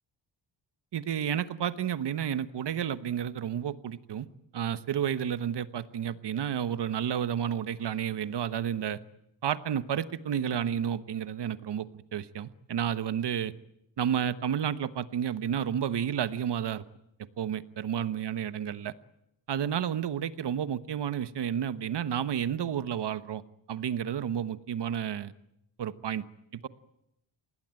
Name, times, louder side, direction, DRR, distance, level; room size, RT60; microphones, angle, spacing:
voice 1, 0.9-4.3 4.5-9.0 9.4-11.9 12.1-13.5 14.0-16.8 17.4-18.9 19.5-23.4 23.7-25.3 25.8-26.2 26.5-26.7, right 9 dB, 60° right, 13 dB, 1.2 m, -31 dB
26.5 x 20.0 x 9.0 m, 0.83 s
wide cardioid pair, 140°, 47 cm